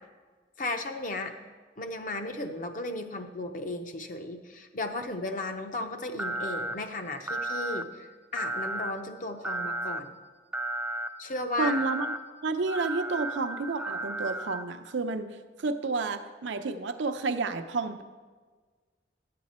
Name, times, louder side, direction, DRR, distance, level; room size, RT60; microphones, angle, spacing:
voice 1, 0.6-1.3 1.8-10.1 11.2-11.8, left 2 dB, 45° left, 6 dB, 0.6 m, -35 dB
sound 1, 6.2-6.8 7.3-7.8 8.4-8.9 9.4-10.0 10.5-11.1 11.6-12.2 12.7-14.6, right 1 dB, 5° right, 0.3 m, -33 dB
voice 2, 11.6-12.1 12.4-15.3 15.6-18.0, right 3 dB, 85° right, 8 dB, 0.6 m, -30 dB
10.5 x 7.7 x 4.2 m, 1.5 s
head